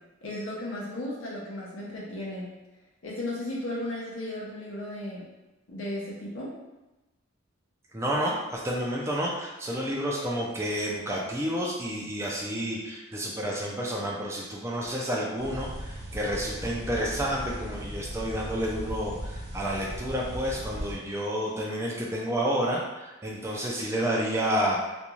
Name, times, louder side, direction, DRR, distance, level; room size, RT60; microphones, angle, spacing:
voice 1, 0.2-2.5 3.0-5.3 5.7-6.5, left 1 dB, 60° left, -6 dB, 0.6 m, -35 dB
voice 2, 7.9-24.9, equal, 15° right, -3 dB, 0.4 m, -30 dB
sound 1, 15.4-20.9, equal, 50° right, 0.7 m, -37 dB
2.5 x 2.3 x 3.0 m, 1.1 s
head